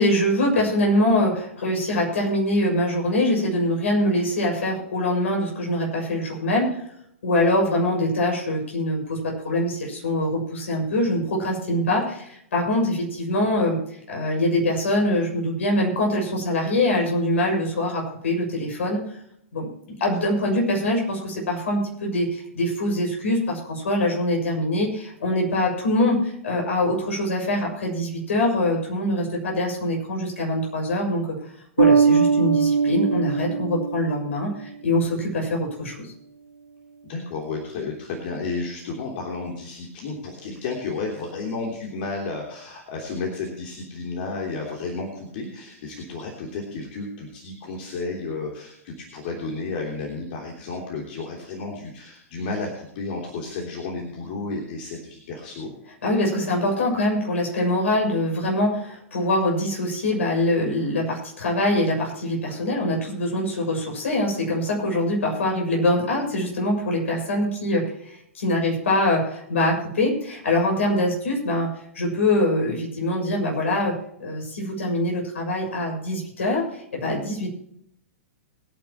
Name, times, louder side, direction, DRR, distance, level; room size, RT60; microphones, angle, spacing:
voice 1, 0.0-6.8 7.2-13.8 14.1-19.0 19.5-31.4 31.8-36.1 56.0-77.5, left 1 dB, 65° left, -1 dB, 6.5 m, -24 dB
Bass guitar, 31.8-34.4, right 5 dB, 70° right, 0.9 m, -20 dB
voice 2, 37.0-55.7, left 3 dB, 45° left, -1 dB, 3.3 m, -32 dB
22.5 x 9.9 x 3.1 m, 0.70 s
figure-of-eight pair, 105°, 7 cm